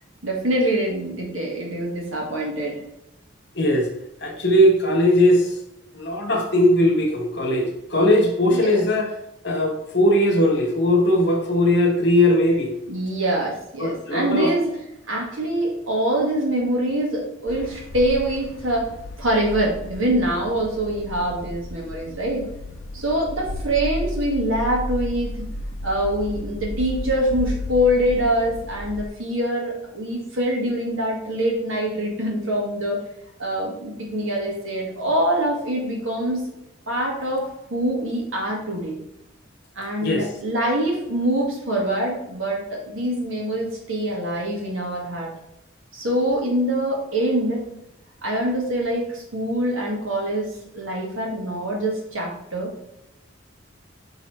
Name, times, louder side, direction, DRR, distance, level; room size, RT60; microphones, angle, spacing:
voice 1, 0.2-2.8 8.5-8.8 12.9-14.8 15.1-18.9 19.2-22.5 22.9-25.5 25.8-33.0 33.4-36.4 36.9-39.0 39.8-45.3 45.9-47.6 48.2-52.7, right 1 dB, 85° right, -1 dB, 1.9 m, -24 dB
voice 2, 3.5-3.9 4.2-5.6 5.9-9.1 9.4-12.7 13.8-14.5 40.0-40.3, left 1 dB, 55° left, 1 dB, 1.3 m, -19 dB
sound 1, 17.5-29.1, left 1 dB, 85° left, 0.6 m, -33 dB
5.4 x 4.1 x 4.7 m, 0.87 s
head